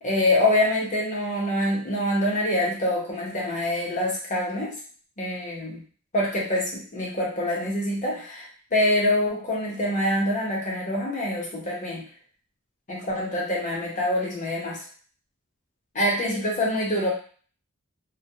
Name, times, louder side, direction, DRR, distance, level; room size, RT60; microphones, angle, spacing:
voice 1, 0.0-4.7 5.2-5.8 6.1-8.5 8.7-12.0 12.9-14.8 15.9-17.1, left 1 dB, 35° left, -3 dB, 0.7 m, -25 dB
2.2 x 2.1 x 2.7 m, 0.42 s
head